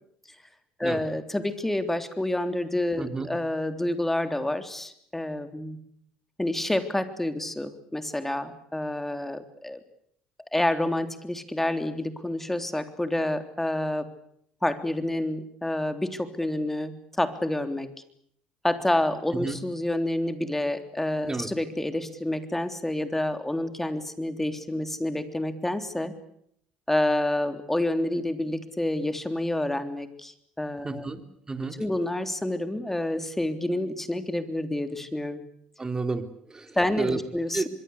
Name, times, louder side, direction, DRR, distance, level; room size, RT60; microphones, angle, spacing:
voice 1, 0.8-5.8 6.4-9.8 10.5-14.1 14.6-17.9 18.6-26.1 26.9-31.1 31.8-35.4 36.8-37.6, left 1 dB, 10° left, 9 dB, 3.5 m, -28 dB
voice 2, 3.0-3.3 19.4-19.6 21.3-21.5 30.8-31.2 31.5-31.8 35.8-37.2 37.5-37.7, right 3 dB, 20° right, 8 dB, 3.6 m, -31 dB
25.0 x 22.5 x 8.4 m, 0.70 s
supercardioid pair, 75°, 3 cm